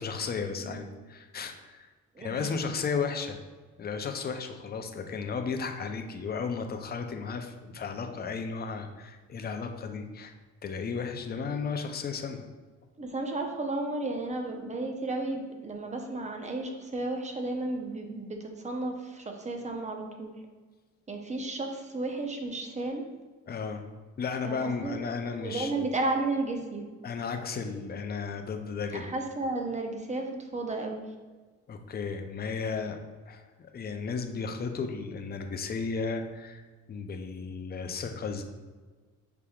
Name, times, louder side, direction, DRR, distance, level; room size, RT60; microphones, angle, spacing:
voice 1, 0.0-1.9 2.2-3.4 3.8-10.3 10.6-12.4 23.5-23.9 24.2-25.9 27.0-29.1 31.7-33.0 33.3-36.6 36.9-38.4, left 5 dB, 30° left, 6 dB, 0.5 m, -34 dB
voice 2, 2.1-2.5 13.0-20.3 21.1-23.0 24.4-25.0 25.4-26.8 28.9-31.0, right 2 dB, 25° right, 3 dB, 0.6 m, -33 dB
5.8 x 3.4 x 2.3 m, 1.4 s
cardioid pair, 90°, 30 cm